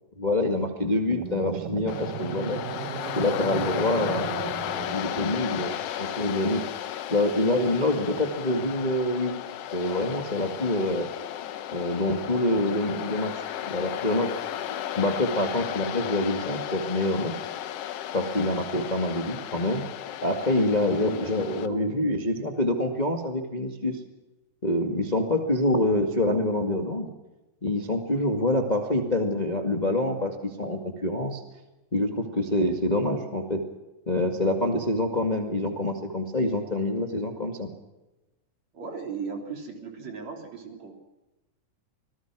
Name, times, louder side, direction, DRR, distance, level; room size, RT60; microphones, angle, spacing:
voice 1, 0.2-2.6 3.1-4.4 4.8-6.6 7.1-9.3 9.7-11.1 11.7-14.3 15.0-17.3 18.1-19.8 20.2-24.0 24.6-27.1 27.6-31.4 31.9-33.6 34.1-37.7, left 1 dB, 20° left, 4 dB, 1.5 m, -26 dB
sound 1, 1.1-5.4, right 9 dB, 80° right, 2.7 m, -36 dB
Waves surf, 1.9-21.7, left 11 dB, 65° left, 1.6 m, -34 dB
voice 2, 21.1-21.8 28.1-28.3 38.7-40.9, right 5 dB, 55° right, 3 dB, 4.5 m, -38 dB
26.5 x 19.5 x 6.1 m, 1.0 s
omnidirectional pair, 3.7 m